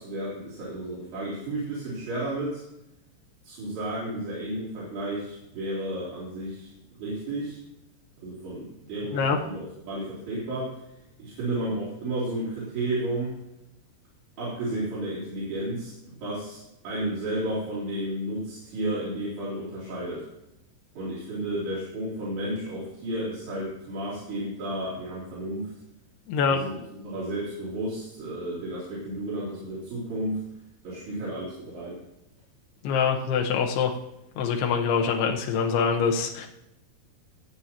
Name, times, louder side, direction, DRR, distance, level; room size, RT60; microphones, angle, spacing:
voice 1, 0.0-2.6 3.4-6.7 7.0-7.6 8.2-10.7 11.2-13.3 14.4-15.9 16.2-20.2 20.9-25.7 26.5-30.4 30.8-32.0, right 1 dB, 75° right, -10 dB, 5.3 m, -32 dB
voice 2, 26.3-26.6 32.8-33.9 34.4-36.5, left 6 dB, 80° left, 2 dB, 3.0 m, -24 dB
19.0 x 8.1 x 3.0 m, 0.86 s
omnidirectional pair, 4.7 m